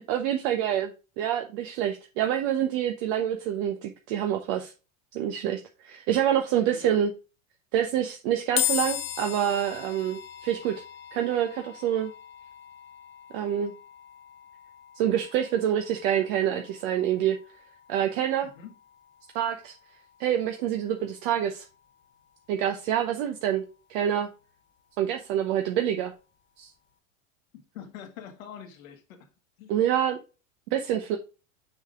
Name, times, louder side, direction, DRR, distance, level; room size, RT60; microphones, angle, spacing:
voice 1, 0.1-0.9 1.2-4.7 5.1-7.1 7.7-10.8 11.1-12.1 13.3-13.7 15.0-17.4 17.9-18.5 19.3-19.7 20.2-21.6 22.5-23.6 23.9-24.3 25.0-26.1 26.6-26.7 29.7-30.2 30.7-31.2, right 10 dB, 60° right, 1.0 m, -26 dB
voice 2, 6.6-7.0 18.4-18.7 27.7-29.3 29.6-29.8, left 9 dB, 80° left, 1.8 m, -43 dB
sound 1, 8.6-21.9, left 12 dB, 30° left, 0.9 m, -38 dB
6.3 x 5.0 x 3.7 m
hypercardioid pair, 100°, 40 cm